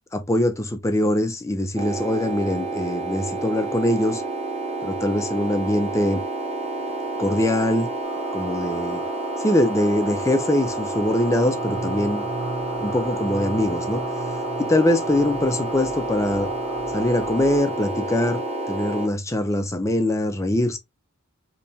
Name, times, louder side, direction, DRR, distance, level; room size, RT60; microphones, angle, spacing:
voice 1, 0.1-4.2 4.8-6.2 7.2-7.9 8.3-9.0 9.4-12.3 12.8-16.5 16.9-18.4 18.7-20.8, left 1 dB, 15° left, 0.5 m, -23 dB
sound 1, 1.8-19.1, right 2 dB, 30° right, 0.6 m, -29 dB
sound 2, 8.0-17.6, right 3 dB, 45° right, 1.7 m, -36 dB
3.4 x 2.9 x 2.6 m
head